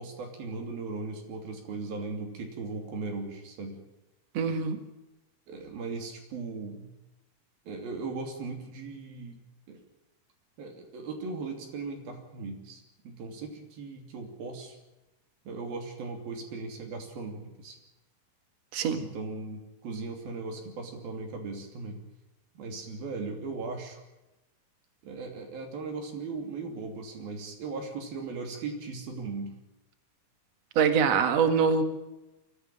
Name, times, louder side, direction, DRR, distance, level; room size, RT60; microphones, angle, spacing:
voice 1, 0.0-3.8 5.5-6.9 7.7-9.4 9.7-9.8 10.6-14.8 15.5-17.8 19.0-22.0 22.6-24.0 25.0-29.6, right 4 dB, 65° right, 3 dB, 4.7 m, -38 dB
voice 2, 4.3-4.8 18.7-19.0 30.8-31.8, right 6 dB, 50° right, 8 dB, 2.5 m, -24 dB
23.0 x 15.0 x 8.8 m, 0.98 s
omnidirectional pair, 4.6 m